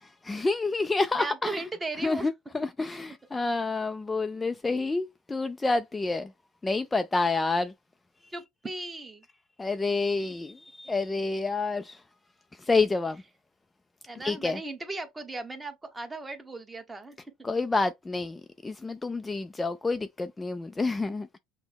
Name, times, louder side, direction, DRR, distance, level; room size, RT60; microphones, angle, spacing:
voice 1, 0.0-1.6 2.0-6.3 6.6-7.7 9.6-12.0 12.6-13.2 14.1-14.6 17.4-21.4, left 3 dB, 15° left, 0.3 m, -28 dB
voice 2, 1.2-2.3 8.3-9.2 14.1-17.2, right 3 dB, 15° right, 1.0 m, -37 dB
6.0 x 2.1 x 3.5 m
cardioid pair, 125°, 0 cm